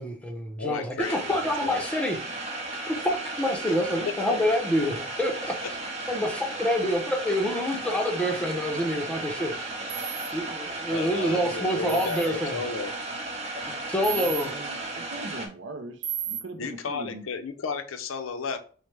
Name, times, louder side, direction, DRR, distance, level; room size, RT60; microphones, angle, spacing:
voice 1, 0.0-2.2 2.9-5.6 6.1-9.5 10.3-12.6 13.9-14.6, equal, 5° left, 0.6 m, -27 dB
voice 2, 0.6-1.8 3.7-4.4 5.6-5.7 10.9-12.9 16.6-18.6, left 4 dB, 85° left, 0.5 m, -33 dB
sound 1, 1.0-15.5, right 2 dB, 35° right, 0.8 m, -35 dB
sound 2, 9.9-10.3 11.9-12.3 14.0-14.4 16.0-16.4, right 10 dB, 85° right, 0.9 m, -33 dB
voice 3, 14.1-17.2, right 2 dB, 65° right, 0.5 m, -40 dB
6.2 x 2.1 x 3.3 m
head